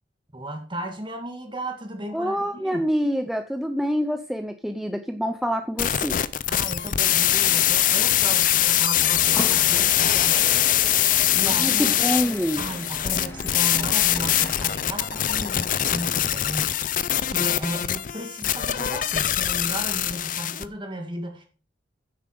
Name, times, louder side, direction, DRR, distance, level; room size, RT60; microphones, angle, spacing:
voice 1, 0.3-2.9 6.5-12.0 12.6-16.9 17.2-21.5, right 1 dB, 25° right, 4 dB, 1.9 m, -35 dB
voice 2, 2.1-6.2 11.5-12.6, equal, ahead, 7 dB, 0.5 m, -26 dB
sound 1, 5.8-20.6, left 12 dB, 45° left, 0.5 m, -22 dB
sound 2, 9.0-14.7, left 1 dB, 15° left, 1.9 m, -37 dB
9.8 x 7.3 x 5.1 m, 0.38 s
head